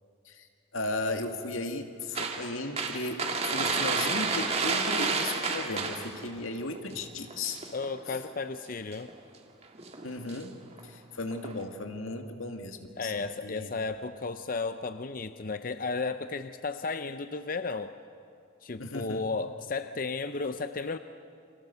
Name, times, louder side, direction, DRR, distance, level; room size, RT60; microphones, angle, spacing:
voice 1, 0.7-7.6 8.1-8.2 10.0-10.6 10.8-13.7 18.8-19.2, left 2 dB, 90° left, 5 dB, 2.1 m, -36 dB
sound 1, 2.2-6.3 6.7-6.9 7.2-8.2 8.9-9.2 9.8-10.4 10.7-10.8 11.3-11.6, right 4 dB, 30° right, 1.9 m, -30 dB
voice 2, 7.7-9.1 13.0-18.0 18.6-21.0, left 4 dB, 45° left, 10 dB, 0.6 m, -34 dB
29.5 x 25.5 x 6.9 m, 2.4 s
head